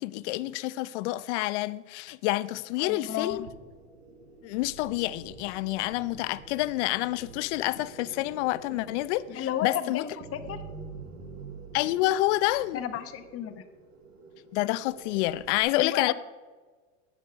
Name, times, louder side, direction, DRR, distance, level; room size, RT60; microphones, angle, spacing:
voice 1, 0.0-3.5 4.4-10.0 11.7-12.8 14.5-16.1, left 17 dB, 65° left, 0.6 m, -28 dB
voice 2, 2.8-3.5 9.3-10.6 12.7-13.6 15.8-16.1, left 10 dB, 35° left, 1.1 m, -33 dB
sound 1, 3.3-15.6, right 4 dB, 80° right, 1.8 m, -47 dB
9.9 x 8.5 x 5.2 m
hypercardioid pair, 100°, 37 cm